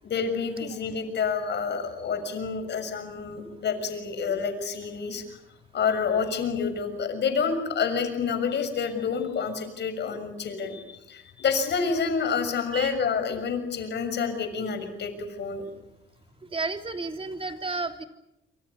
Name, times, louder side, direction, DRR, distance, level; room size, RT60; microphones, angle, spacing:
voice 1, 0.0-5.2 5.7-15.6, left 6 dB, 60° left, 8 dB, 6.6 m, -28 dB
voice 2, 16.5-18.0, right 3 dB, 25° right, 6 dB, 3.3 m, -32 dB
27.0 x 25.5 x 7.2 m, 0.88 s
cardioid pair, 90°, 20 cm